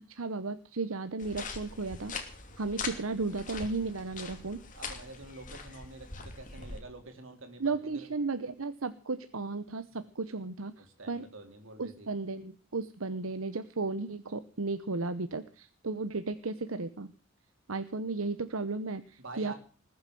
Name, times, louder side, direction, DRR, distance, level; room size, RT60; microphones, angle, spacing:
voice 1, 0.0-2.1 2.6-4.6 7.6-11.3 11.8-17.1 17.7-19.5, right 3 dB, 85° right, 11 dB, 1.0 m, -34 dB
sound 1, 1.2-6.8, left 4 dB, 40° left, 2.9 m, -42 dB
voice 2, 4.7-8.1 9.9-10.0 10.8-12.1 19.2-19.5, right 2 dB, 65° right, 6 dB, 3.4 m, -47 dB
20.5 x 8.1 x 7.8 m, 0.40 s
head